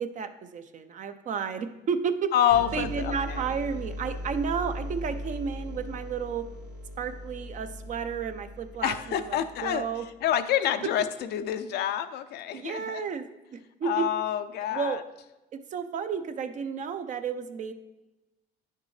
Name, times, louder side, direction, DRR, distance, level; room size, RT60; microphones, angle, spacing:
voice 1, 0.0-2.3 2.7-6.5 7.0-10.1 12.5-14.1 14.7-15.0 15.5-17.7, right 6 dB, 45° right, 9 dB, 0.6 m, -32 dB
voice 2, 2.3-3.4 8.8-9.9 10.2-11.0 11.3-13.0 13.8-15.0, left 10 dB, 70° left, 10 dB, 0.6 m, -27 dB
sound 1, 2.5-10.1, left 1 dB, 75° right, 1.5 m, -39 dB
9.5 x 6.6 x 3.2 m, 1.0 s
cardioid pair, 110°, 17 cm